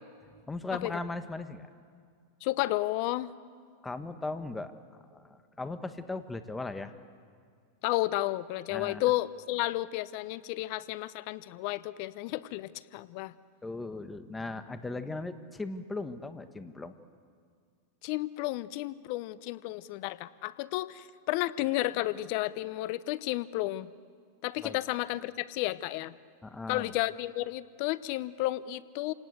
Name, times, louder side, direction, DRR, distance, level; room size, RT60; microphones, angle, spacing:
voice 1, 0.5-1.7 3.8-6.9 8.7-9.0 13.6-16.9 24.6-24.8 26.4-26.9, left 3 dB, 10° left, 10 dB, 1.5 m, -38 dB
voice 2, 2.4-3.3 7.8-13.3 18.0-23.9 24.4-26.1 26.7-29.1, left 17 dB, 55° left, 17 dB, 0.8 m, -32 dB
27.0 x 19.0 x 8.2 m, 2.1 s
hypercardioid pair, 115°, 0 cm